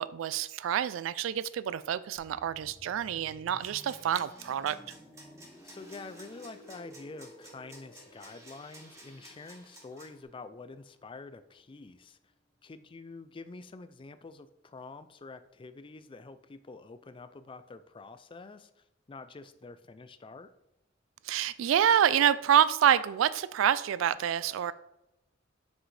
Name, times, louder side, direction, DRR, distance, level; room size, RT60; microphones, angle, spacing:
voice 1, 0.0-4.9 21.2-24.7, right 9 dB, 85° right, 17 dB, 0.3 m, -27 dB
sound 1, 2.2-11.8 12.1-12.3, equal, 5° left, 1.2 m, -55 dB
sound 2, 3.6-10.2, right 1 dB, 15° right, 1.6 m, -54 dB
voice 2, 5.6-12.2 12.6-20.5, left 3 dB, 25° left, 12 dB, 0.4 m, -47 dB
7.3 x 6.2 x 3.3 m, 0.85 s
head